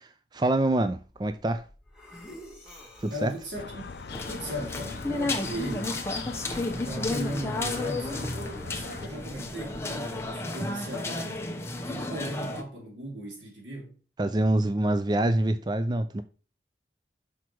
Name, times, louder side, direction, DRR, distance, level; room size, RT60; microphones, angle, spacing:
voice 1, 0.0-1.6 3.0-3.3 14.2-16.2, right 1 dB, 25° right, 0.4 m, -26 dB
sound 1, 0.8-10.3, left 1 dB, 5° right, 1.6 m, -51 dB
voice 2, 3.1-3.8 4.3-6.0 6.8-14.0, equal, 90° right, 3.0 m, -37 dB
sound 2, 3.6-9.1, left 4 dB, 65° left, 0.5 m, -41 dB
sound 3, 4.1-12.6, left 2 dB, 15° left, 0.8 m, -32 dB
6.0 x 5.9 x 4.6 m
head